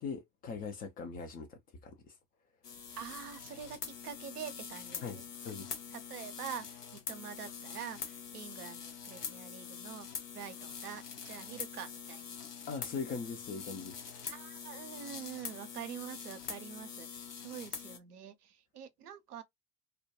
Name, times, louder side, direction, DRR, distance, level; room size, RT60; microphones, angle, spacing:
voice 1, 0.0-2.1 5.0-5.7 12.7-14.0, left 5 dB, 20° left, 0.3 m, -41 dB
sound 1, 2.6-18.0, left 7 dB, 80° left, 0.8 m, -45 dB
voice 2, 3.0-5.2 5.9-10.1 10.3-12.4 14.2-19.4, right 8 dB, 75° right, 0.6 m, -46 dB
2.2 x 2.1 x 2.8 m
figure-of-eight pair, 70°, 46 cm